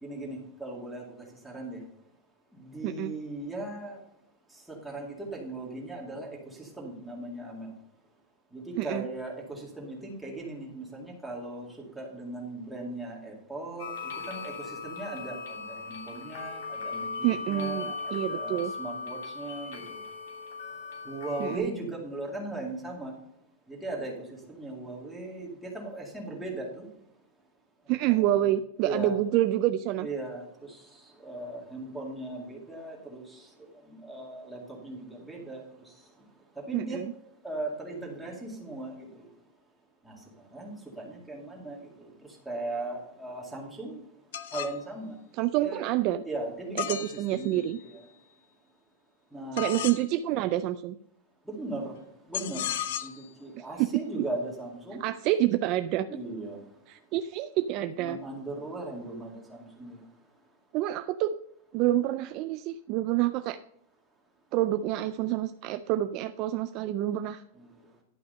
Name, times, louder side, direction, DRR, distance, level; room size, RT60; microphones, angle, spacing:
voice 1, 0.0-1.1 1.4-1.8 2.5-4.0 4.5-7.7 8.5-11.7 11.9-20.0 21.0-23.1 23.7-26.9 28.1-28.4 28.8-29.2 30.0-36.0 36.6-37.0 37.4-39.3 40.0-44.0 44.5-45.2 45.6-45.8 46.2-47.0 47.3-48.0 49.3-49.9 51.5-52.0 52.3-55.0 56.1-56.7 58.0-60.0 67.6-67.8, right 2 dB, ahead, -3 dB, 2.2 m, -38 dB
sound 1, 13.8-21.6, left 4 dB, 85° left, 3.1 m, -38 dB
voice 2, 17.2-18.7 21.4-21.7 27.9-30.1 36.7-37.1 45.3-46.2 46.9-47.8 49.5-51.0 53.6-53.9 55.0-56.1 56.9-58.2 60.7-61.3 61.7-63.6 64.5-67.4, right 13 dB, 30° right, 11 dB, 0.3 m, -28 dB
sound 2, 44.3-44.8 46.8-47.8 49.6-50.0 52.3-53.3, left 11 dB, 65° left, 0.9 m, -34 dB
11.5 x 5.6 x 5.3 m, 0.78 s
supercardioid pair, 175°, 0 cm